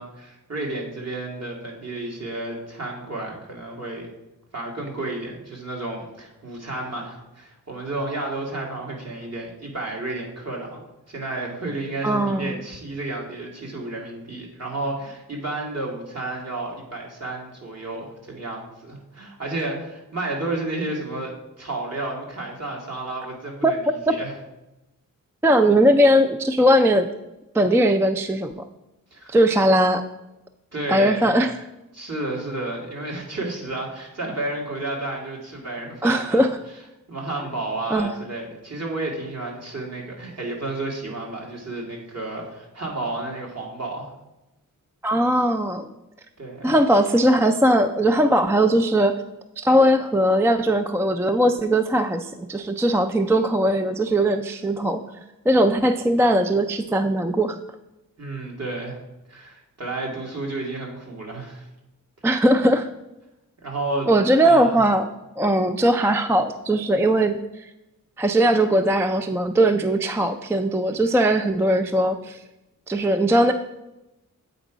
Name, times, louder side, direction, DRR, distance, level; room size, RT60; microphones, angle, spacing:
voice 1, 0.0-4.1 4.5-21.3 21.6-24.3 29.1-29.4 30.7-31.3 31.9-36.4 37.1-44.1 46.4-46.8 58.2-59.0 59.3-61.7 63.6-64.1 64.4-64.8, right 2 dB, 50° right, -2 dB, 2.0 m, -31 dB
voice 2, 12.0-12.5 23.6-23.7 25.4-27.1 27.5-28.7 29.3-30.0 30.9-31.5 36.0-36.6 37.9-38.1 45.0-45.9 46.6-49.1 49.6-55.0 55.5-57.6 62.2-62.9 64.1-65.1 65.4-67.7 68.2-72.4 72.9-73.5, right 1 dB, 10° right, 9 dB, 0.3 m, -19 dB
7.9 x 4.5 x 5.0 m, 0.96 s
wide cardioid pair, 100°, 33 cm